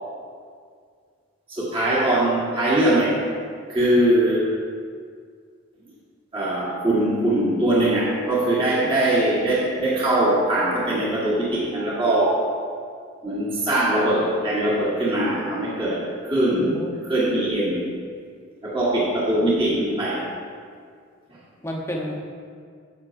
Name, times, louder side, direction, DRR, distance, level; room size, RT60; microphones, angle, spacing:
voice 1, 1.5-3.2 3.7-4.5 6.3-12.4 13.2-16.8 17.1-17.8 18.6-20.2, right 1 dB, 25° right, -7 dB, 1.5 m, -21 dB
voice 2, 16.2-16.9 21.6-22.2, equal, 15° left, -1 dB, 0.8 m, -32 dB
10.0 x 7.4 x 2.6 m, 2.1 s
head